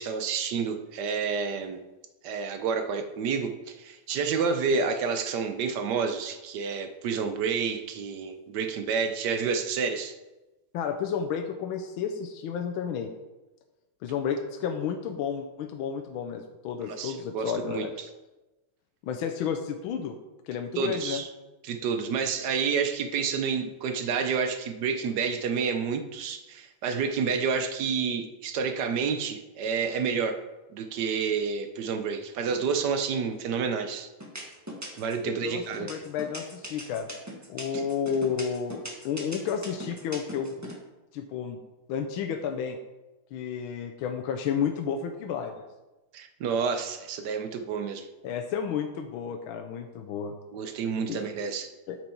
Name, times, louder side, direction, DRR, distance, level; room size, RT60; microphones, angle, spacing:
voice 1, 0.0-1.8 2.2-10.1 17.0-17.9 20.8-21.3 21.6-30.4 30.7-34.1 35.0-35.9 37.7-37.8 46.1-48.1 50.5-51.7, right 5 dB, 70° right, 8 dB, 1.0 m, -29 dB
voice 2, 10.7-13.1 14.0-17.9 19.0-20.1 20.5-21.2 35.2-37.1 37.5-40.8 41.1-41.6 41.9-42.8 43.3-45.6 48.2-50.3 51.1-51.2 51.9-52.0, left 7 dB, 75° left, 4 dB, 1.4 m, -31 dB
sound 1, 33.3-33.7 34.2-35.2 35.7-40.7, right 1 dB, 10° right, 0.8 m, -40 dB
9.0 x 6.2 x 4.4 m, 1.1 s
omnidirectional pair, 2.4 m